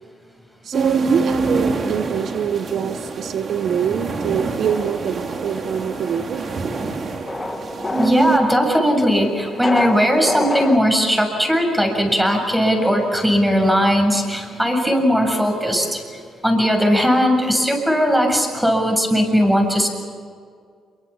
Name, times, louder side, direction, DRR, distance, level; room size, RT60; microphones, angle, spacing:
voice 1, 0.6-6.5, right 8 dB, 65° right, 11 dB, 0.9 m, -24 dB
sound 1, 0.7-8.4, right 4 dB, 45° right, 3.1 m, -25 dB
sound 2, 4.6-10.8, left 3 dB, 20° left, 1.9 m, -29 dB
voice 2, 8.0-16.0 16.4-19.9, equal, 5° right, 3 dB, 7.4 m, -18 dB
28.0 x 23.5 x 7.3 m, 2.1 s
cardioid pair, 90°, 0 cm